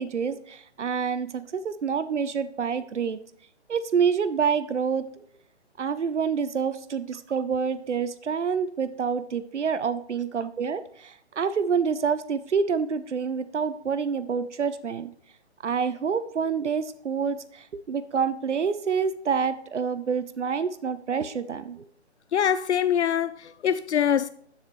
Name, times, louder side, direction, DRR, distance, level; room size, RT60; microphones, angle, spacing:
voice 1, 0.0-3.2 3.7-5.0 5.8-15.1 15.6-21.9, right 6 dB, 90° right, 0.7 m, -27 dB
voice 2, 22.3-24.3, left 9 dB, 75° left, 0.5 m, -24 dB
13.0 x 7.2 x 3.1 m
figure-of-eight pair, 150°, 34 cm